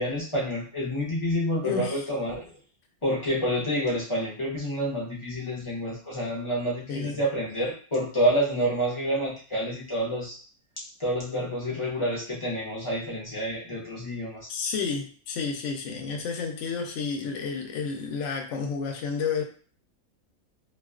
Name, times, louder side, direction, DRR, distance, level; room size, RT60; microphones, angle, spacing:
voice 1, 0.0-2.5 3.0-10.4 10.8-14.5, equal, 35° left, -5 dB, 0.5 m, -28 dB
voice 2, 1.6-2.0 6.9-7.2 14.5-19.4, left 5 dB, 70° left, 3 dB, 0.8 m, -31 dB
2.3 x 2.3 x 2.3 m, 0.43 s
omnidirectional pair, 1.5 m